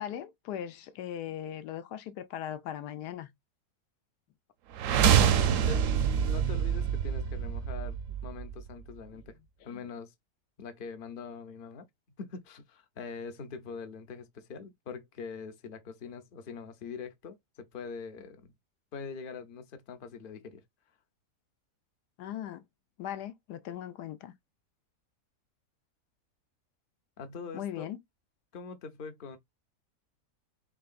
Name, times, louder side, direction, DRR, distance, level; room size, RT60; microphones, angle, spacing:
voice 1, 0.0-3.3 9.7-9.8 22.2-22.6 23.0-24.3 27.5-28.0, left 10 dB, 85° left, 1.3 m, -39 dB
sound 1, 4.7-8.7, right 8 dB, 65° right, 0.8 m, -26 dB
voice 2, 5.0-5.4 5.7-5.9 6.2-8.0 8.2-9.4 9.6-10.1 10.6-11.9 12.2-18.5 18.9-20.6 27.2-27.9 28.5-29.4, left 5 dB, 45° left, 0.7 m, -43 dB
4.7 x 3.3 x 2.4 m
omnidirectional pair, 1.7 m